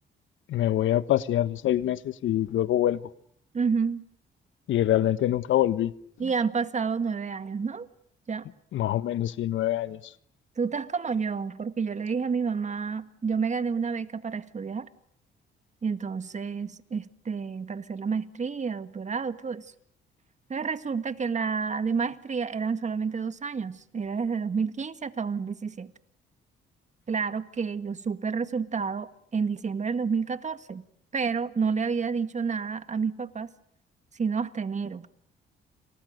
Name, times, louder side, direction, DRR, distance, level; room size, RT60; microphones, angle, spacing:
voice 1, 0.5-3.0 4.7-5.9 8.7-10.1, left 12 dB, 75° left, 1.4 m, -25 dB
voice 2, 3.5-4.0 6.2-7.9 8.3-8.5 10.6-14.9 15.8-19.7 20.5-25.9 27.1-30.8 31.1-33.5 34.2-35.1, right 5 dB, 35° right, 1.9 m, -29 dB
30.0 x 29.0 x 6.7 m
cardioid pair, 90°, 20 cm